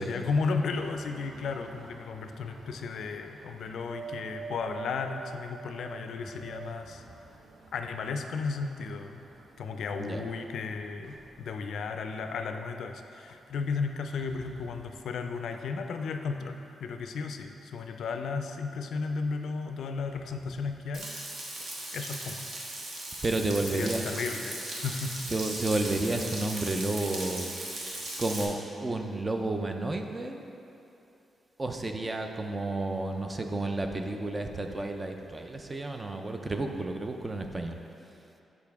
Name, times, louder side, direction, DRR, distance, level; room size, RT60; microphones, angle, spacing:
voice 1, 0.0-7.0 7.7-9.2 9.6-21.2 21.9-22.5 23.7-25.2, left 4 dB, 70° left, 6 dB, 0.3 m, -34 dB
sound 1, 0.7-13.0 13.3-13.7, right 5 dB, 80° right, 0.5 m, -48 dB
Frying (food), 20.9-28.4, right 1 dB, 55° right, 1.1 m, -38 dB
voice 2, 23.2-24.0 25.3-27.5 28.2-30.5 31.6-37.8, right 2 dB, 20° right, 4 dB, 0.3 m, -31 dB
6.8 x 5.1 x 3.5 m, 2.8 s
wide cardioid pair, 160°, 0 cm